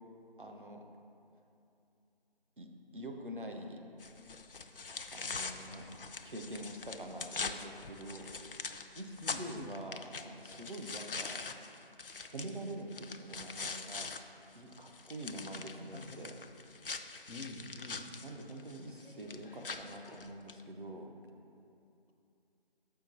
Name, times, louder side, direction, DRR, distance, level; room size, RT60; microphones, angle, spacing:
voice 1, 0.4-0.8 2.6-3.8 5.1-6.0 6.2-8.3 9.0-11.4 12.2-14.1 14.5-16.3 18.2-21.1, right 1 dB, 55° right, 2 dB, 0.8 m, -45 dB
sound 1, 4.0-14.2 14.5-20.6, left 4 dB, 65° left, 0.4 m, -43 dB
voice 2, 5.6-6.0 9.2-9.8 15.4-16.3 17.3-18.1, left 2 dB, 85° left, 4 dB, 0.9 m, -48 dB
6.7 x 5.8 x 4.1 m, 2.6 s
figure-of-eight pair, 165°, 30 cm